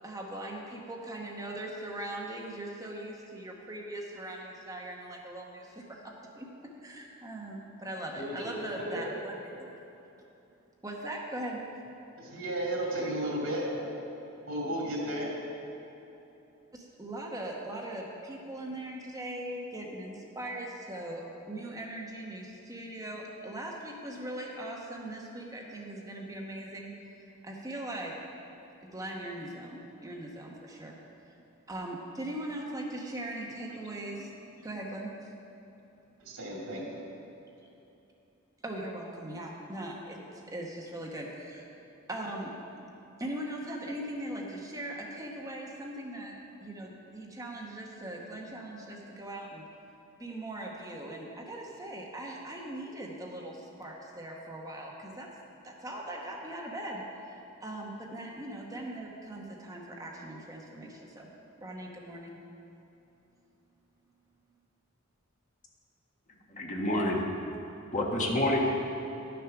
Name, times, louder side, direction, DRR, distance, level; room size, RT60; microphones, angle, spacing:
voice 1, 0.0-6.5 6.8-9.7 10.8-11.6 16.7-27.1 27.4-28.2 28.8-31.0 31.7-34.3 34.6-35.1 38.6-40.2 40.5-41.7 42.1-42.5 43.2-49.6 50.2-55.3 55.6-61.3 61.6-62.4, right 1 dB, 15° right, -1 dB, 1.0 m, -40 dB
voice 2, 8.1-9.0 12.2-13.9 14.5-15.3 36.2-37.0, right 1 dB, 90° right, -3 dB, 2.5 m, -34 dB
voice 3, 66.5-67.2 67.9-68.6, left 1 dB, 35° left, -1 dB, 1.4 m, -28 dB
11.0 x 6.9 x 5.9 m, 2.9 s
head